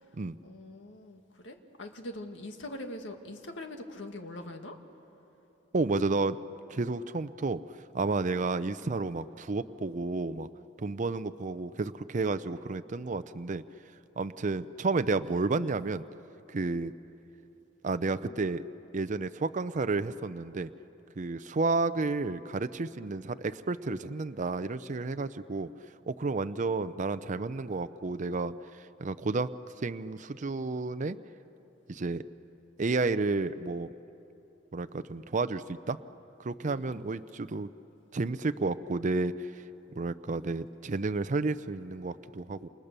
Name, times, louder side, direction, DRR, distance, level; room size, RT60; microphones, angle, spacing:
voice 1, 0.4-4.8 36.7-37.1, left 1 dB, 80° left, 5 dB, 2.0 m, -43 dB
voice 2, 5.7-6.4 6.7-7.6 7.9-10.5 10.8-13.6 14.2-16.0 16.5-16.9 17.8-18.6 18.9-20.7 21.2-25.7 26.1-29.5 29.8-31.2 31.9-32.2 32.8-33.9 34.7-36.0 36.4-37.7 38.1-39.5 40.0-42.7, right 3 dB, 40° right, 11 dB, 0.5 m, -31 dB
29.0 x 28.0 x 6.8 m, 2.9 s
head